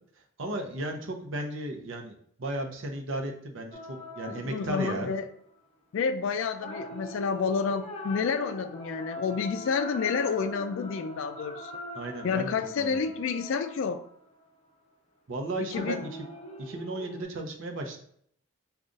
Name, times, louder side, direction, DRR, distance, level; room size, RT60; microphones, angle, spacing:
voice 1, 0.4-5.1 11.9-13.0 15.3-16.1 16.6-18.0, right 1 dB, 60° right, 2 dB, 0.7 m, -35 dB
sound 1, 3.7-5.3 6.6-14.5 15.7-17.2, equal, 30° left, 0.6 m, -42 dB
voice 2, 4.2-5.2 5.9-11.7 12.2-14.0 15.7-16.0, left 5 dB, 60° left, 9 dB, 0.3 m, -29 dB
5.0 x 2.3 x 3.8 m, 0.66 s
head